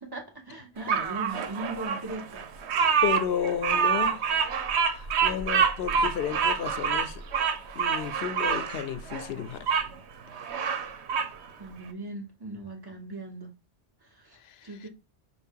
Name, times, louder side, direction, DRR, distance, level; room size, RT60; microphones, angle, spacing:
voice 1, 0.0-2.9 11.6-13.5 14.0-14.9, right 2 dB, 20° right, 1.1 m, -39 dB
Bird vocalization bird call bird song, 0.9-9.9 10.3-11.3, right 6 dB, 85° right, 0.9 m, -27 dB
voice 2, 3.0-4.3 4.8-7.2 7.8-9.8 14.3-14.9, left 9 dB, 75° left, 0.8 m, -33 dB
6.0 x 2.3 x 3.6 m
omnidirectional pair, 1.1 m